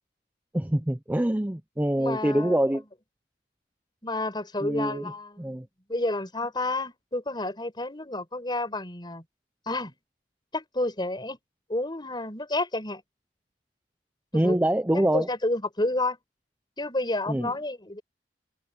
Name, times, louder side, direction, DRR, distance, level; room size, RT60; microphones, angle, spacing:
voice 1, 0.5-2.8 4.6-5.1 5.4-5.7 14.3-15.3 17.3-17.5, right 1 dB, 10° right, 0.6 m, -25 dB
voice 2, 2.0-2.6 4.0-9.2 9.7-10.0 10.5-11.4 11.7-13.0 14.3-14.6 14.9-16.2 16.8-18.0, left 2 dB, 25° left, 5.6 m, -30 dB
open air
head